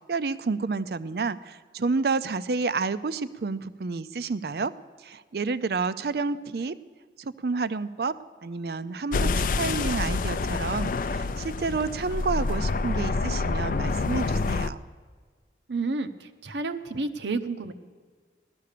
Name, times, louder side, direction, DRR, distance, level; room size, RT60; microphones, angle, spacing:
voice 1, 0.1-4.7 5.0-6.8 7.2-14.8, right 4 dB, 60° right, 15 dB, 0.5 m, -30 dB
sound 1, 9.1-14.7, left 3 dB, 50° left, 0.4 m, -27 dB
voice 2, 15.7-17.7, right 3 dB, 80° right, 8 dB, 0.8 m, -30 dB
16.5 x 12.5 x 6.7 m, 1.5 s
head